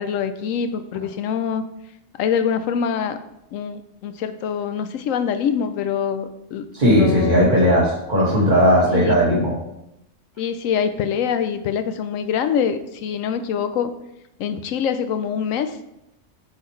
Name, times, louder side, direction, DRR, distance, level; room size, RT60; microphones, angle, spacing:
voice 1, 0.0-1.6 2.2-3.2 3.5-7.5 8.9-9.2 10.4-13.9 14.4-15.8, left 7 dB, 80° left, 10 dB, 1.0 m, -24 dB
voice 2, 6.7-9.5, equal, 35° right, -4 dB, 2.1 m, -17 dB
8.4 x 4.1 x 3.2 m, 0.84 s
omnidirectional pair, 1.4 m